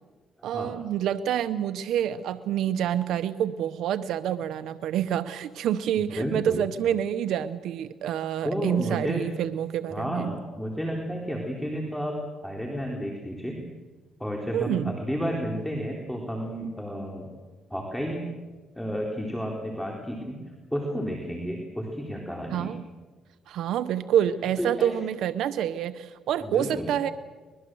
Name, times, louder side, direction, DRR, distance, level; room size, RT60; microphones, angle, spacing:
voice 1, 0.4-10.3 14.5-15.0 22.5-22.8 23.5-27.1, right 10 dB, 80° right, 11 dB, 0.8 m, -27 dB
voice 2, 6.2-6.7 8.4-9.2 9.9-12.2 12.4-13.6 14.2-17.3 17.7-18.3 18.8-20.4 20.7-22.7 24.6-24.9 26.4-26.9, equal, 5° left, 0 dB, 3.9 m, -31 dB
24.0 x 21.0 x 7.8 m, 1.3 s
cardioid pair, 90°, 0 cm